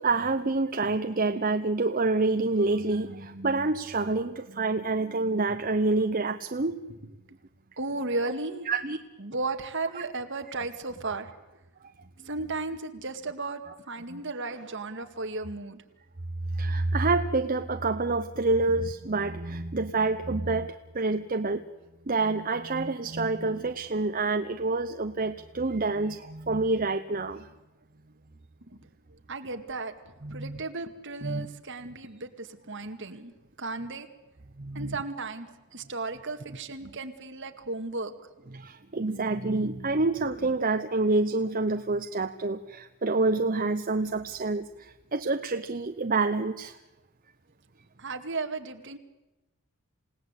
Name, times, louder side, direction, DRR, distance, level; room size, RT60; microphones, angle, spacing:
voice 1, 0.0-6.8 8.7-9.0 14.1-14.2 16.6-20.7 20.9-21.6 22.1-27.4 30.2-30.6 31.2-31.5 34.6-35.0 38.5-46.7, right 3 dB, 40° right, 7 dB, 0.9 m, -27 dB
voice 2, 6.6-7.1 7.8-8.7 9.2-11.3 12.2-15.8 28.7-28.9 29.3-29.9 30.3-33.3 33.6-34.1 34.7-38.1 48.0-49.0, right 3 dB, 55° right, 6 dB, 2.1 m, -35 dB
28.0 x 18.0 x 8.3 m, 1.1 s
head